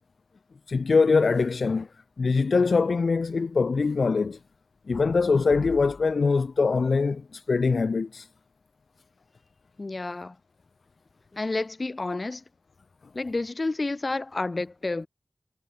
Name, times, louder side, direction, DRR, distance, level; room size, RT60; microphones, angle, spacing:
voice 1, 0.7-1.9 2.2-4.4 4.9-8.3, left 4 dB, 80° left, 2.7 m, -23 dB
voice 2, 9.8-10.4 11.3-12.4 13.1-15.1, left 2 dB, 45° left, 5.1 m, -30 dB
wide cardioid pair, 55°, 0 cm